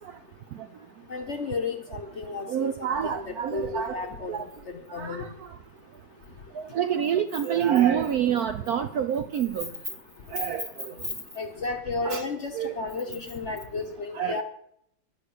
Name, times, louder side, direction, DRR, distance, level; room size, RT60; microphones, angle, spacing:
voice 1, 1.1-2.7 3.0-4.3 4.9-5.3 11.4-14.4, left 4 dB, 45° left, 1.0 m, -33 dB
voice 2, 2.5-4.0 4.3-4.4 4.9-5.3 6.6-9.7 10.3-10.9 12.0-12.2 12.5-12.7 14.1-14.4, right 9 dB, 70° right, 0.9 m, -27 dB
11.5 x 6.4 x 8.3 m
omnidirectional pair, 2.1 m